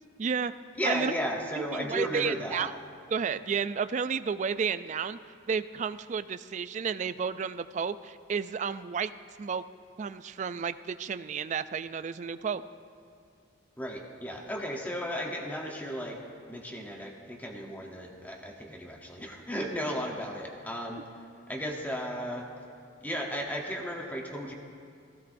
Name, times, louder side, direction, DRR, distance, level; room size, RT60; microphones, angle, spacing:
voice 1, 0.2-0.5 0.8-1.1 1.6-2.7 3.1-5.2 5.5-9.1 9.4-9.6 10.0-12.6, right 6 dB, 35° right, 13 dB, 0.3 m, -31 dB
voice 2, 0.7-2.7 13.8-21.1 21.5-22.5 23.0-24.5, equal, 10° left, 1 dB, 0.9 m, -35 dB
19.0 x 15.5 x 2.6 m, 2.5 s
head